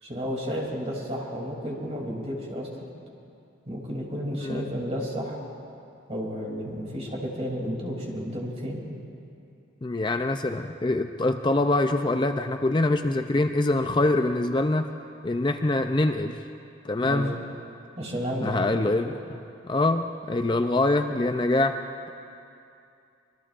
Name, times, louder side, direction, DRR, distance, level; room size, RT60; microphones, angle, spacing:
voice 1, 0.0-2.7 3.7-5.4 6.1-8.8 17.0-17.2 18.0-18.8, equal, 35° right, -2 dB, 2.9 m, -32 dB
voice 2, 9.8-14.9 15.2-16.4 16.8-17.3 18.4-19.4 19.6-21.8, left 2 dB, 25° left, 7 dB, 0.4 m, -24 dB
25.5 x 21.5 x 2.5 m, 2.6 s
head